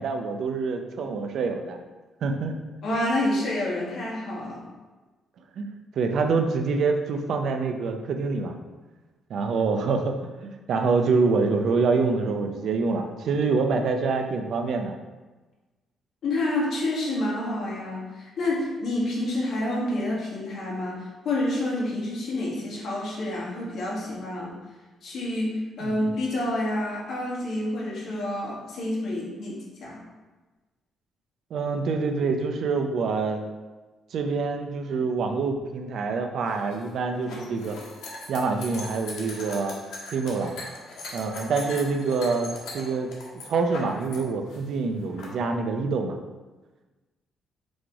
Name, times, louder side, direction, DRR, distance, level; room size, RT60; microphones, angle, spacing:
voice 1, 0.0-1.8 2.2-2.6 5.6-5.7 6.0-8.6 9.3-10.2 10.4-14.9 25.8-26.1 31.5-33.4 34.1-37.8 38.3-39.7 40.1-40.6 41.1-43.1 43.5-46.2, right 4 dB, 65° right, 5 dB, 0.7 m, -26 dB
voice 2, 2.8-4.7 16.2-24.6 25.0-30.0, left 1 dB, 65° left, -4 dB, 1.9 m, -28 dB
sound 1, 36.5-44.2 44.4-45.3, left 2 dB, 85° left, 1.5 m, -39 dB
6.4 x 3.1 x 4.7 m, 1.2 s
cardioid pair, 90°, 0 cm